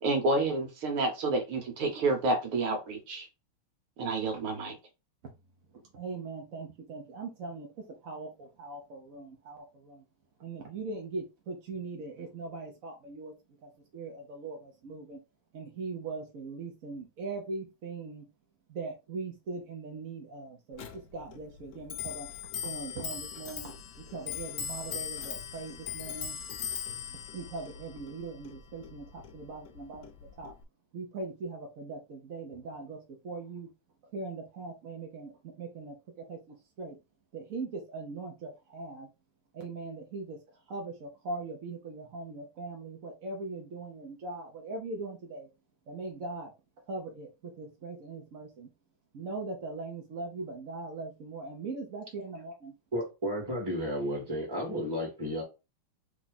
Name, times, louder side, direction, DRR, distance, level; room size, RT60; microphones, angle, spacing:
voice 1, 0.0-3.3 4.0-4.8, right 2 dB, 75° right, 1.9 m, -29 dB
voice 2, 5.7-10.0 10.4-13.3 13.6-15.2 15.5-18.3 18.7-22.3 22.6-26.3 27.3-30.5 30.9-33.7 34.1-37.0 37.3-39.1 39.5-40.4 40.7-45.5 45.9-46.5 46.9-48.7 49.1-52.7, right 3 dB, 55° right, 0.9 m, -40 dB
Clock, 20.7-30.6, left 8 dB, 85° left, 0.8 m, -40 dB
voice 3, 52.9-55.4, equal, 10° right, 1.8 m, -32 dB
3.6 x 3.2 x 4.0 m
omnidirectional pair, 2.4 m